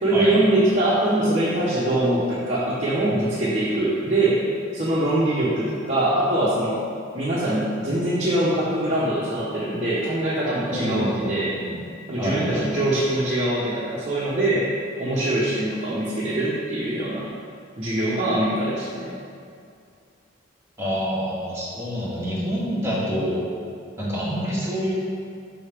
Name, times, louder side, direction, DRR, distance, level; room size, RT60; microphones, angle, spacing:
voice 1, 0.0-4.5 4.7-6.8 7.1-11.5 12.1-14.7 15.0-17.3 17.8-19.1, right 1 dB, 40° right, -9 dB, 1.0 m, -23 dB
voice 2, 10.7-11.8 12.2-12.7 20.8-23.4 24.0-24.9, equal, 15° right, -7 dB, 1.8 m, -27 dB
5.6 x 5.4 x 5.0 m, 2.3 s
head